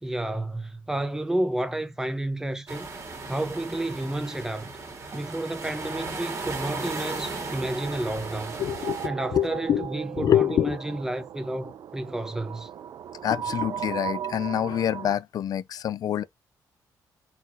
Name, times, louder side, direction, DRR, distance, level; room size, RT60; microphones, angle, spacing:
voice 1, 0.0-2.9 3.3-4.7 5.1-8.6 9.0-12.7, right 1 dB, 5° right, 0.9 m, -31 dB
sound 1, 2.7-9.1, right 3 dB, 40° right, 1.9 m, -36 dB
sound 2, 6.4-15.2, right 9 dB, 65° right, 0.5 m, -37 dB
voice 2, 8.6-9.9 10.2-10.8 13.2-16.2, left 10 dB, 60° left, 0.5 m, -26 dB
4.2 x 3.9 x 2.7 m
cardioid pair, 100°, 7 cm